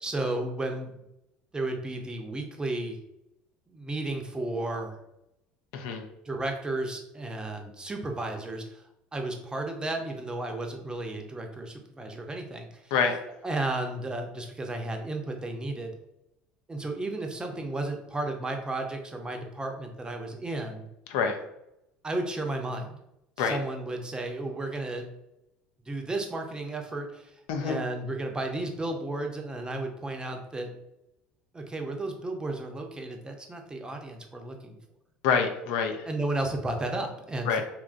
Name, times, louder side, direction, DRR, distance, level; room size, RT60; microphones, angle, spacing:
voice 1, 0.0-1.0 1.5-3.0 3.7-5.0 6.2-8.8 9.1-12.9 13.4-15.9 16.7-20.9 22.0-23.0 23.4-25.1 25.9-30.7 31.5-34.8 36.1-37.6, right 2 dB, 15° right, 3 dB, 0.6 m, -33 dB
voice 2, 5.7-6.1 12.9-13.2 21.1-21.4 23.4-23.6 27.5-27.8 35.2-36.1 37.5-37.6, left 6 dB, 70° left, 5 dB, 0.4 m, -26 dB
2.9 x 2.4 x 2.4 m, 0.85 s
hypercardioid pair, 75°, 5 cm